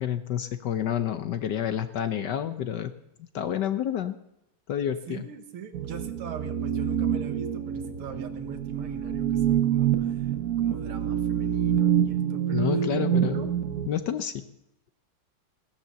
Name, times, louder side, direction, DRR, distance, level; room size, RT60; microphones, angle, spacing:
voice 1, 0.0-2.9 3.3-4.2 4.7-5.2 12.5-13.5 13.9-14.4, left 9 dB, 65° left, 10 dB, 1.2 m, -29 dB
voice 2, 5.1-10.3 10.6-12.7 13.0-13.6, right 7 dB, 85° right, 7 dB, 2.2 m, -41 dB
sound 1, 5.7-13.9, right 9 dB, 65° right, 0.9 m, -26 dB
16.0 x 10.5 x 6.9 m, 0.85 s
omnidirectional pair, 2.3 m